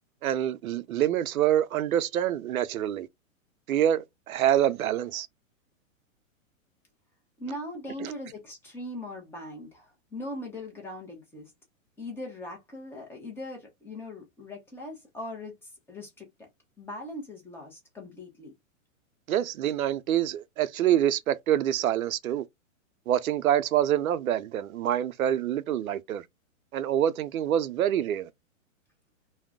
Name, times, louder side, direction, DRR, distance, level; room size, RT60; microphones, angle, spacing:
voice 1, 0.2-3.1 3.7-5.3 8.0-8.1 19.3-22.4 23.1-26.2 26.7-28.3, right 11 dB, 85° right, 0.6 m, -26 dB
voice 2, 7.4-11.5 12.0-15.6 15.9-16.5 16.8-18.5, left 1 dB, 5° left, 0.5 m, -40 dB
2.3 x 2.1 x 3.4 m
hypercardioid pair, 140°, 41 cm